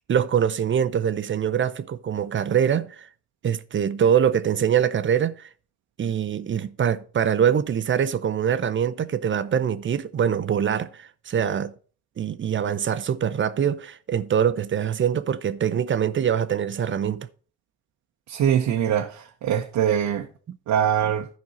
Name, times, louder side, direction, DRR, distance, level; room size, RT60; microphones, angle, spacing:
voice 1, 0.1-3.1 3.4-5.5 6.0-11.7 12.2-17.3 20.5-20.6, right 8 dB, 40° right, 0.6 m, -24 dB
voice 2, 18.3-20.2 20.7-21.3, right 9 dB, 75° right, 0.9 m, -23 dB
12.5 x 5.3 x 4.2 m
cardioid pair, 90°, 30 cm